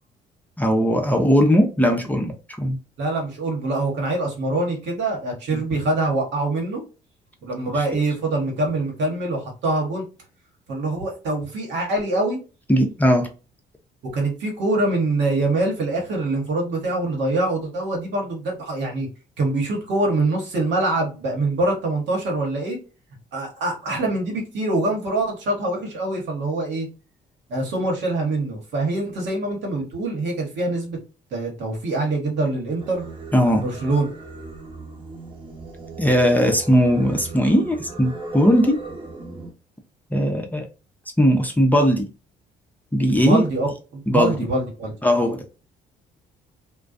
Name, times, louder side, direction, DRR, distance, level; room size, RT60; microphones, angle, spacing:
voice 1, 0.6-2.3 2.6-2.8 5.5-5.6 12.7-13.3 33.3-33.6 36.0-38.8 40.1-40.7 41.2-42.1 42.9-43.4 44.1-44.4 45.0-45.4, equal, 10° left, 0.6 m, -18 dB
voice 2, 3.0-6.8 7.4-10.1 10.7-12.4 14.1-19.1 19.4-22.8 23.3-26.9 27.5-31.0 31.3-33.0 33.5-34.1 43.1-44.9, right 2 dB, 70° right, 1.1 m, -24 dB
Singing, 32.8-39.5, right 3 dB, 25° right, 0.9 m, -37 dB
2.3 x 2.1 x 2.5 m
supercardioid pair, 60°, 19 cm